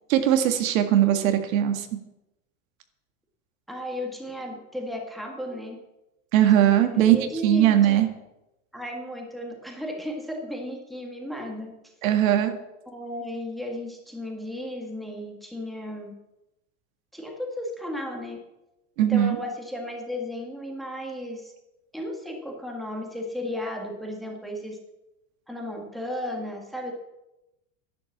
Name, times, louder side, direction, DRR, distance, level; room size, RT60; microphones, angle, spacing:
voice 1, 0.1-1.9 6.3-7.2 7.4-8.1 12.0-12.5 19.0-19.4, right 11 dB, 80° right, 7 dB, 2.0 m, -20 dB
voice 2, 3.7-5.8 6.8-8.0 8.7-11.7 12.9-16.1 17.1-18.4 19.0-21.5 21.9-24.8 25.5-26.9, left 1 dB, ahead, 0 dB, 1.7 m, -34 dB
11.0 x 10.5 x 7.2 m, 0.94 s
supercardioid pair, 165°, 40 cm